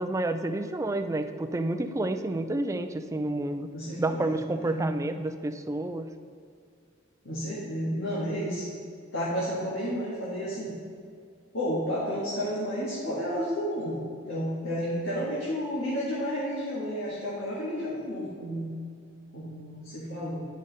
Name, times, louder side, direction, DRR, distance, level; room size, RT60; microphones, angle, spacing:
voice 1, 0.0-3.7 4.0-6.1, right 2 dB, 15° right, 7 dB, 0.4 m, -30 dB
voice 2, 3.7-4.9 7.2-8.7 9.1-10.7 11.5-14.0 14.3-18.7 19.3-20.5, equal, 75° left, -8 dB, 1.6 m, -31 dB
10.5 x 5.1 x 4.0 m, 2.2 s
head